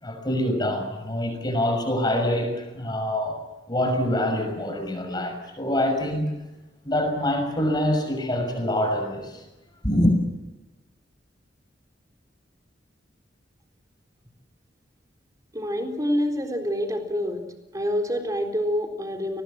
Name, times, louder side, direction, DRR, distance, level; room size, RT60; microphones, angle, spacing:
voice 1, 0.0-3.4 3.7-6.3 6.8-9.4 9.8-10.2, left 1 dB, 25° left, 5 dB, 6.4 m, -25 dB
voice 2, 15.5-17.4 17.7-19.4, equal, 20° right, 4 dB, 3.9 m, -27 dB
30.0 x 21.0 x 7.6 m, 1.0 s
head